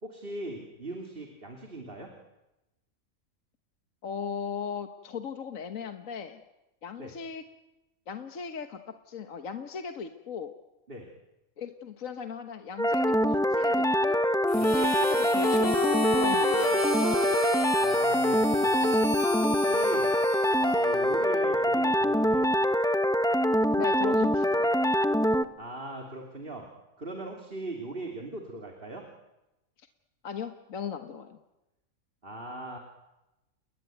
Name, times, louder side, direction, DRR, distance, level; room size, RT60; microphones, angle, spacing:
voice 1, 0.0-2.1 7.0-7.1 10.9-11.1 14.5-14.7 17.8-19.1 19.4-20.1 20.6-22.5 25.6-26.7 27.0-29.1 32.2-32.8, right 1 dB, 40° right, 2 dB, 3.2 m, -39 dB
voice 2, 4.0-6.4 6.8-7.4 8.1-8.8 9.1-10.5 11.6-14.2 14.7-16.8 23.8-24.7 29.8-29.9 30.2-31.4, left 6 dB, 70° left, 7 dB, 1.6 m, -38 dB
sound 1, 12.8-25.4, equal, 5° left, 0.9 m, -24 dB
Harmonica, 14.5-21.4, left 2 dB, 25° left, 4.0 m, -33 dB
30.0 x 21.5 x 9.2 m, 0.99 s
omnidirectional pair, 1.5 m